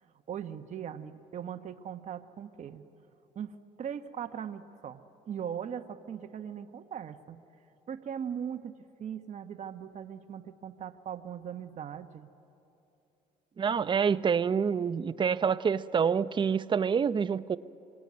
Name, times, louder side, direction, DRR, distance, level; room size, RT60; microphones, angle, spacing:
voice 1, 0.0-2.8 3.3-7.4 7.9-12.3, right 8 dB, 45° right, 7 dB, 1.1 m, -40 dB
voice 2, 13.6-17.6, right 6 dB, 30° right, 14 dB, 0.6 m, -27 dB
26.5 x 23.5 x 9.6 m, 2.9 s
cardioid pair, 110°, 17 cm